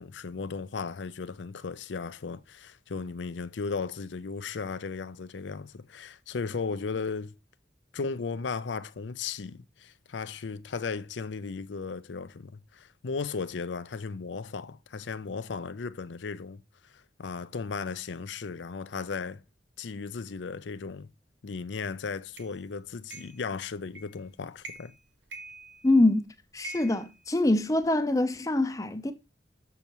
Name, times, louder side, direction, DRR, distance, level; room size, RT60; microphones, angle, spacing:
voice 1, 0.0-7.3 7.9-19.4 19.8-21.1 21.4-24.9, left 5 dB, 85° left, 0.5 m, -36 dB
sound 1, 22.4-22.5 23.1-23.4 23.9-24.2 24.6-25.0 25.3-26.1 26.6-27.9, right 2 dB, 85° right, 1.3 m, -44 dB
voice 2, 25.8-26.3 26.5-29.1, left 2 dB, 20° left, 0.5 m, -24 dB
7.0 x 6.8 x 2.9 m
head